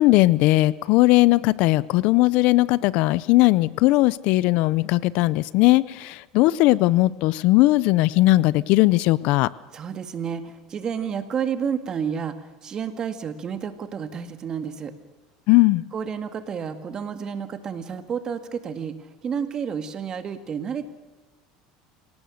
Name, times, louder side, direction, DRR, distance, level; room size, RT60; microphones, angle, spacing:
voice 1, 0.0-9.5 15.5-15.8, left 19 dB, 60° left, 20 dB, 0.6 m, -18 dB
voice 2, 9.7-14.9 15.9-18.9 19.2-20.9, right 7 dB, 30° right, 8 dB, 2.0 m, -30 dB
26.0 x 18.0 x 6.5 m, 1.2 s
supercardioid pair, 135°, 2 cm